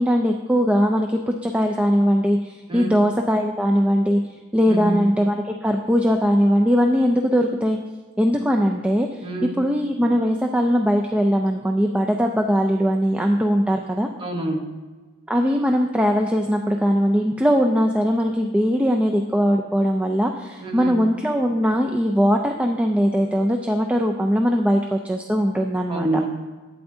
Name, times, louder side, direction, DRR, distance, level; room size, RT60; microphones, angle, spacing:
voice 1, 0.0-4.2 4.5-7.8 8.2-9.3 9.6-14.1 15.3-26.1, equal, 5° right, 2 dB, 0.3 m, -20 dB
voice 2, 4.7-5.0 9.2-9.6 14.2-14.8 20.6-21.0 25.9-26.3, right 2 dB, 25° right, 3 dB, 0.9 m, -27 dB
11.5 x 8.8 x 2.7 m, 1.3 s
head